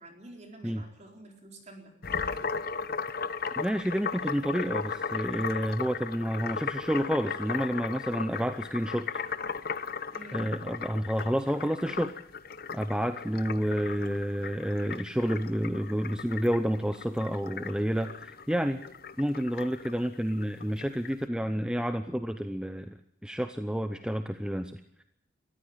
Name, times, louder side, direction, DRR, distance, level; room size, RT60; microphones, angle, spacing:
voice 1, 0.0-1.9 10.1-10.5, right 2 dB, 35° right, 3 dB, 4.4 m, -48 dB
sound 1, 2.0-21.1, left 5 dB, 50° left, 0.9 m, -36 dB
voice 2, 3.6-9.1 10.3-12.1 12.7-18.8 19.2-23.0 23.2-24.7, equal, 5° right, 8 dB, 0.7 m, -29 dB
22.5 x 14.5 x 9.1 m, 0.82 s
head